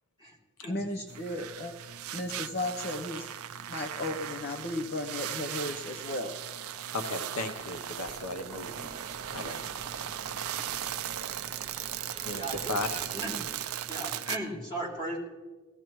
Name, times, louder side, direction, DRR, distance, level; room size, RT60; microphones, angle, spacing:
voice 1, 0.7-1.7 2.1-3.3 3.7-6.3, left 1 dB, 45° left, 6 dB, 0.8 m, -35 dB
sound 1, 1.1-14.4, right 10 dB, 80° right, 0.5 m, -38 dB
voice 2, 6.9-8.9 9.3-9.7 12.2-13.1, left 2 dB, 80° left, 7 dB, 0.9 m, -35 dB
sound 2, 7.5-14.0, right 1 dB, 5° left, 2.0 m, -55 dB
sound 3, 8.5-13.6, right 3 dB, 25° right, 0.5 m, -50 dB
voice 3, 12.3-12.8 13.1-13.4 13.9-15.2, right 1 dB, 25° left, -4 dB, 3.1 m, -36 dB
18.0 x 15.0 x 3.1 m, 1.3 s
head